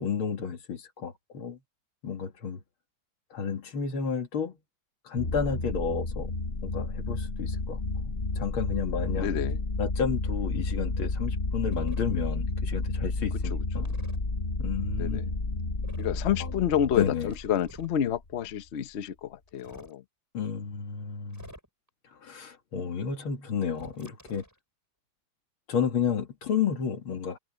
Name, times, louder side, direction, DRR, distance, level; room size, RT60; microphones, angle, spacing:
voice 1, 0.0-1.6 2.0-2.6 3.3-4.6 5.0-6.3 6.6-9.3 9.8-13.9 14.6-15.2 16.4-16.5 17.0-17.3 20.3-21.5 22.2-24.4 25.7-27.4, left 6 dB, 85° left, 2.7 m, -31 dB
sound 1, 5.2-18.0, left 3 dB, 30° left, 1.8 m, -31 dB
voice 2, 9.2-9.6 13.5-13.9 15.0-15.2 16.0-20.0, left 10 dB, 60° left, 0.7 m, -29 dB
sound 2, 11.7-12.0 13.8-14.2 15.8-16.2 17.2-18.0 19.5-19.9 21.3-21.9 23.7-24.6, equal, 10° right, 7.1 m, -49 dB
omnidirectional pair, 2.2 m